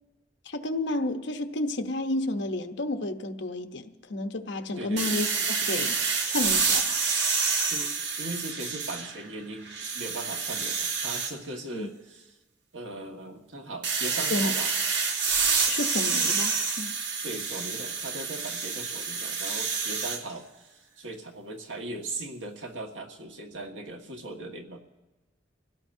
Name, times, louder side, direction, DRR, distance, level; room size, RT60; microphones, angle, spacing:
voice 1, 0.5-5.3 5.6-6.0 6.3-7.0 11.7-11.9 14.3-14.5 15.7-16.9, left 2 dB, 70° left, 0.9 m, -31 dB
voice 2, 4.8-5.2 7.7-12.3 12.7-14.7 17.2-20.7 21.0-24.8, right 2 dB, 85° right, 1.7 m, -39 dB
sound 1, 5.0-9.3 9.7-11.3 13.8-20.2, right 5 dB, 65° right, 1.3 m, -28 dB
27.0 x 16.5 x 2.7 m
head